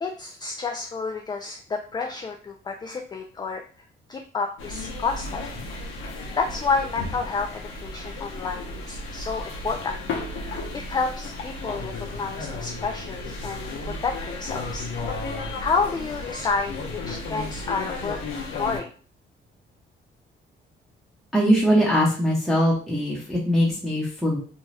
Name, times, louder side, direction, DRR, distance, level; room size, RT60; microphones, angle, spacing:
voice 1, 0.0-3.6 4.1-5.4 6.4-10.0 10.3-14.9 15.6-18.2 18.6-18.9, left 4 dB, 20° left, 3 dB, 0.3 m, -30 dB
sound 1, 4.6-18.8, left 3 dB, 85° left, 0.8 m, -34 dB
voice 2, 21.3-24.4, equal, ahead, -6 dB, 0.8 m, -21 dB
2.7 x 2.2 x 3.2 m, 0.43 s
cardioid pair, 90°, 20 cm